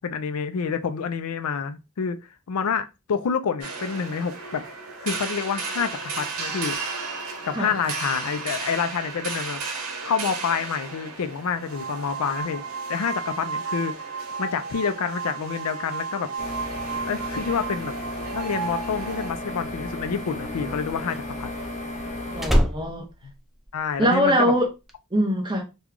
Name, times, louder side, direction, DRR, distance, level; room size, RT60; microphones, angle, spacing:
voice 1, 0.0-2.2 2.5-4.6 5.0-6.8 7.4-9.6 10.0-12.6 12.9-16.3 17.1-17.9 18.3-21.5 23.2-23.3 23.7-24.5, left 6 dB, 80° left, 0.4 m, -28 dB
sound 1, 3.6-19.3, right 4 dB, 75° right, 1.0 m, -33 dB
sound 2, 16.4-22.5, left 1 dB, 30° left, 0.9 m, -34 dB
Slam, 20.1-24.2 24.5-24.9, equal, ahead, 0.4 m, -27 dB
voice 2, 22.3-23.1 24.0-24.7 25.1-25.6, equal, 20° right, 0.9 m, -22 dB
3.0 x 2.3 x 3.6 m
head